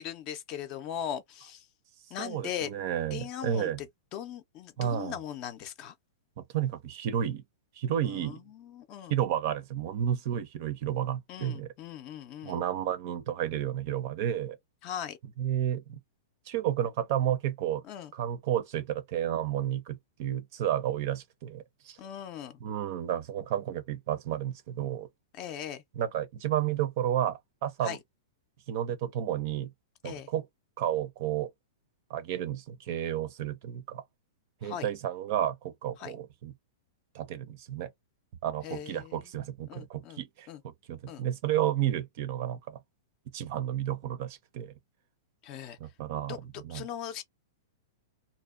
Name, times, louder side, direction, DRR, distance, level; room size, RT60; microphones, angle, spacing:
voice 1, 0.0-1.7 2.1-2.7 3.1-5.9 8.0-9.1 11.3-12.6 14.8-15.2 17.8-18.1 22.0-22.6 25.3-25.8 27.8-28.0 30.0-30.3 34.6-34.9 36.0-36.1 38.6-39.2 39.7-40.2 40.5-40.6 41.1-41.2 45.4-45.8 46.3-46.4 46.7-47.2, left 10 dB, 30° left, 0.5 m, -39 dB
voice 2, 2.2-3.8 4.8-5.2 6.4-7.4 7.8-8.4 9.1-11.7 12.4-14.6 15.4-16.0 16.5-17.8 18.1-22.0 22.6-25.1 26.0-28.0 28.7-29.7 30.0-30.5 30.8-31.5 32.1-34.0 34.6-36.5 37.1-37.9 38.4-42.8 43.3-44.7 45.8-46.4 46.6-46.8, right 10 dB, 45° right, 0.5 m, -31 dB
2.6 x 2.1 x 2.4 m
hypercardioid pair, 155°, 2 cm